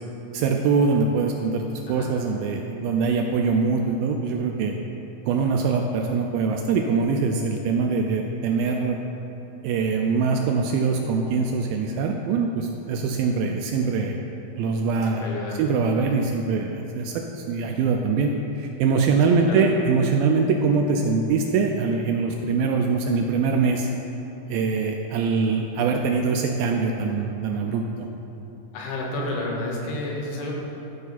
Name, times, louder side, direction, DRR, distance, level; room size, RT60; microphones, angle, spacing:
voice 1, 0.3-4.8 5.3-9.0 9.6-14.2 14.6-15.2 15.6-23.9 24.5-28.1, right 4 dB, 80° right, 2 dB, 2.2 m, -23 dB
voice 2, 15.0-15.6 15.9-16.2 19.4-19.6 28.7-30.5, left 2 dB, 90° left, -2 dB, 3.3 m, -31 dB
13.5 x 5.4 x 4.1 m, 2.9 s
omnidirectional pair, 4.6 m